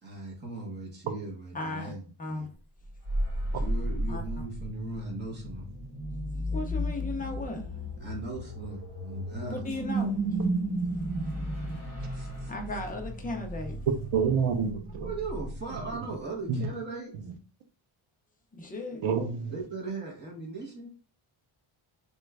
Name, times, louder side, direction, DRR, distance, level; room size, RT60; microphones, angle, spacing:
voice 1, 0.0-2.5 3.6-5.7 8.0-9.6 11.6-11.7 12.1-12.5 15.0-17.1 18.9-19.0 19.5-20.9, right 3 dB, 20° right, 0.8 m, -39 dB
voice 2, 1.5-1.9 2.2-2.5 4.1-4.2 6.5-7.7 9.5-10.2 12.5-13.8 18.5-19.1, left 2 dB, 20° left, 0.3 m, -36 dB
sound 1, 2.8-16.3, right 1 dB, 40° right, 1.5 m, -34 dB
sound 2, 9.6-14.7, left 2 dB, 45° left, 0.7 m, -49 dB
voice 3, 14.1-15.1 16.5-16.7 19.0-19.5, right 6 dB, 80° right, 0.7 m, -27 dB
3.1 x 2.2 x 3.3 m
wide cardioid pair, 180°, 50 cm